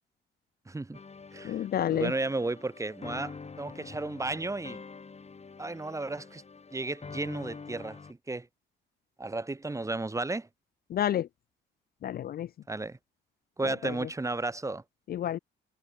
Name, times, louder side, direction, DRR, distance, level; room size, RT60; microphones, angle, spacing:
voice 1, 0.7-1.0 1.3-4.8 5.6-6.4 6.7-8.5 9.2-10.5 12.7-13.0 13.6-14.8, right 2 dB, 15° right, 1.5 m, -34 dB
sound 1, 0.9-8.1, left 5 dB, 35° left, 4.9 m, -46 dB
voice 2, 1.4-2.1 10.9-11.3 12.0-12.5 13.7-13.9 15.1-15.4, left 11 dB, 50° left, 0.4 m, -30 dB
cardioid pair, 90°, 20 cm